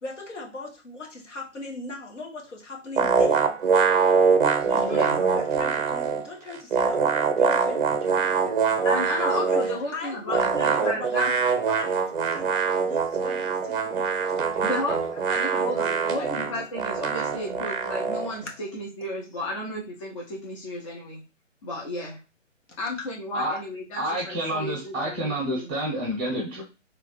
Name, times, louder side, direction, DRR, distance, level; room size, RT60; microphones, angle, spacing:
voice 1, 0.0-3.5 4.6-15.4 15.8-16.5 18.4-18.5 23.0-23.1, left 2 dB, 65° left, -1 dB, 1.6 m, -39 dB
sound 1, 3.0-6.3 6.5-9.8 10.3-18.3, right 5 dB, 45° right, 0.7 m, -24 dB
voice 2, 4.7-5.2 8.8-11.6 14.6-15.0 15.3-21.2 21.6-22.2 22.8-25.7, left 1 dB, 25° left, -3 dB, 0.7 m, -33 dB
voice 3, 24.0-26.6, right 1 dB, 10° right, -4 dB, 0.8 m, -29 dB
3.3 x 2.5 x 4.0 m, 0.29 s
figure-of-eight pair, 135°, 38 cm